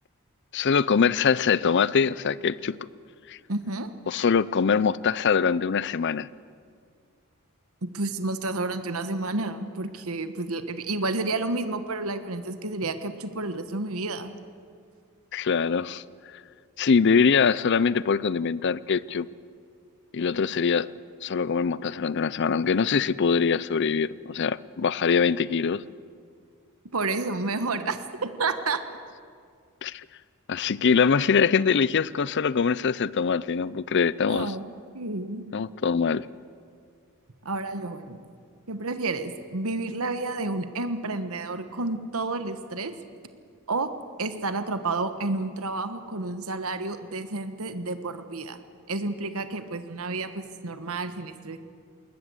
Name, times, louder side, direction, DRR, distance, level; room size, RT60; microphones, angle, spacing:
voice 1, 0.5-2.8 3.3-3.4 4.1-6.3 15.3-16.0 16.8-19.3 20.1-20.9 21.2-25.8 29.8-30.0 30.5-34.5 35.5-36.3, left 6 dB, 50° left, 20 dB, 0.5 m, -23 dB
voice 2, 3.5-3.9 7.8-14.3 26.9-28.8 34.3-35.6 37.4-38.2 38.7-42.9 43.7-43.9 44.2-48.6 48.9-51.6, right 3 dB, 75° right, 10 dB, 1.3 m, -30 dB
20.5 x 20.0 x 7.9 m, 2.2 s
head